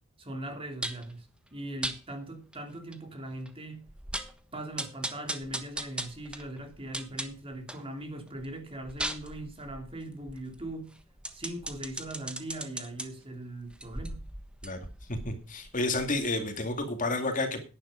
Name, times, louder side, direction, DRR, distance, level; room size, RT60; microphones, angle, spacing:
voice 1, 0.2-3.9 4.5-11.0 11.3-14.2, right 1 dB, 25° right, 2.9 m, -40 dB
sound 1, 0.8-1.1 1.8-2.0 2.5-2.6 2.9-3.0 3.5-3.6 3.9-4.4 4.8-7.9 8.3-13.1 13.7-16.4 16.7-16.8, right 1 dB, 5° right, 1.3 m, -38 dB
voice 2, 15.1-17.6, left 2 dB, 40° left, 2.3 m, -30 dB
11.5 x 10.0 x 5.0 m
head